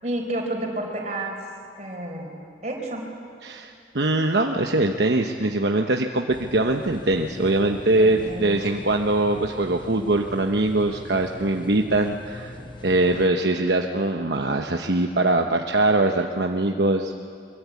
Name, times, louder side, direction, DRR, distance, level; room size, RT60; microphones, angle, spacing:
voice 1, 0.0-1.4 1.8-2.3 2.6-3.0 8.0-8.5, right 1 dB, 40° right, 1 dB, 4.6 m, -30 dB
voice 2, 3.4-12.5 12.8-17.2, right 2 dB, 70° right, 3 dB, 1.0 m, -22 dB
sound 1, 6.3-13.3, left 2 dB, 25° left, 1.0 m, -41 dB
23.5 x 23.0 x 8.4 m, 2.4 s
head